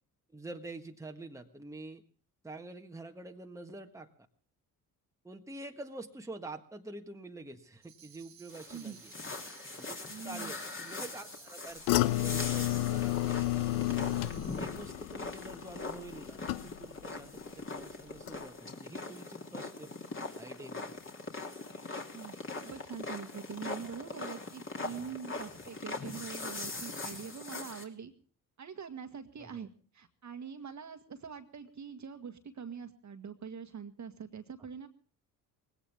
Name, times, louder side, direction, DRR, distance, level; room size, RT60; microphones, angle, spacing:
voice 1, 0.3-2.0 2.4-4.1 5.2-9.1 9.8-14.0 14.5-19.9 20.4-20.9 29.4-29.7, right 2 dB, 5° right, 4 dB, 1.6 m, -47 dB
Tambourine, 7.8-14.9, right 10 dB, 90° right, 1.5 m, -57 dB
sound 1, 8.5-27.8, left 3 dB, 25° left, 3.1 m, -42 dB
voice 2, 10.1-10.5 22.1-22.4 22.6-28.1 28.6-29.7 29.9-34.9, right 6 dB, 35° right, 8 dB, 1.8 m, -44 dB
sound 2, 11.9-17.1 17.4-17.9 18.3-18.4, left 17 dB, 70° left, 0.8 m, -32 dB
20.0 x 17.0 x 3.6 m, 0.42 s
hypercardioid pair, 50°, 47 cm